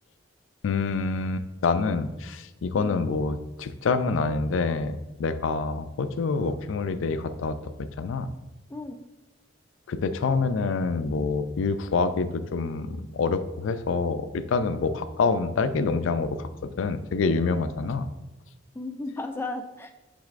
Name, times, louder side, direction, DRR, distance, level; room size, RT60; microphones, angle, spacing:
voice 1, 0.6-4.9 5.2-8.3 9.9-16.5 16.8-18.1, left 4 dB, 90° left, 11 dB, 0.4 m, -26 dB
voice 2, 2.7-3.1 8.7-9.0 18.7-20.0, left 2 dB, 10° left, 6 dB, 0.4 m, -35 dB
9.4 x 4.1 x 2.5 m, 1.0 s
head